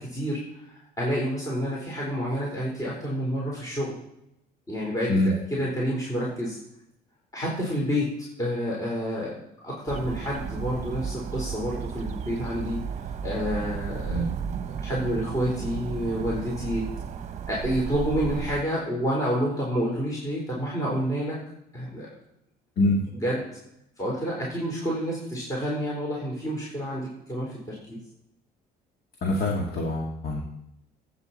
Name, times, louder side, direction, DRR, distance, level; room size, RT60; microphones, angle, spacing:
voice 1, 0.0-4.0 4.7-6.6 7.3-9.4 9.6-14.3 14.8-16.9 17.5-21.4 21.7-22.1 23.2-23.5 24.0-28.0, equal, 20° left, -4 dB, 4.1 m, -29 dB
sound 1, 9.9-18.6, right 7 dB, 45° right, 0.9 m, -34 dB
voice 2, 29.2-30.4, left 1 dB, 65° left, -1 dB, 2.1 m, -24 dB
18.5 x 8.9 x 4.3 m, 0.82 s
cardioid pair, 110°, 17 cm